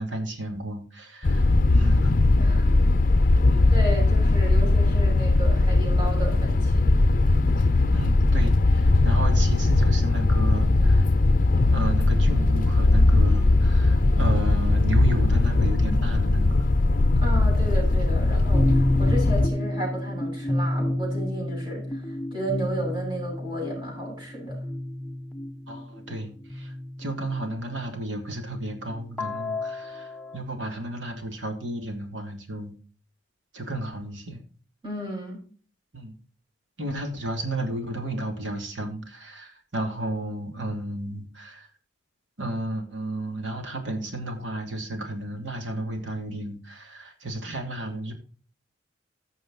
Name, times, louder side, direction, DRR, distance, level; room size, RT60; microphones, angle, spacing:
voice 1, 0.0-2.2 3.5-3.7 7.9-11.1 11.7-16.7 25.7-26.7 27.0-32.7 33.5-34.4 35.9-36.1 36.8-41.7 42.4-48.1, right 1 dB, 85° right, 4 dB, 2.8 m, -32 dB
sound 1, 1.2-19.5, left 2 dB, 50° left, 0.6 m, -20 dB
voice 2, 3.7-7.0 17.2-24.6 34.8-35.4, right 1 dB, 25° right, -4 dB, 6.1 m, -33 dB
sound 2, 18.5-27.7 28.5-30.4, left 1 dB, 10° left, 0.8 m, -30 dB
15.0 x 6.5 x 4.0 m, 0.40 s
head